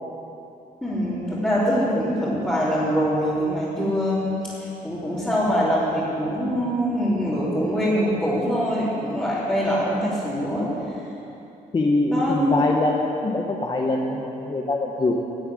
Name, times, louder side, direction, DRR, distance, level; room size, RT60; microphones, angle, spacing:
voice 1, 0.8-10.7 12.1-12.7, equal, 10° left, -10 dB, 3.4 m, -23 dB
voice 2, 11.7-15.1, left 2 dB, 30° left, 0 dB, 1.1 m, -23 dB
12.5 x 7.7 x 9.8 m, 2.9 s
cardioid pair, 110°, 16 cm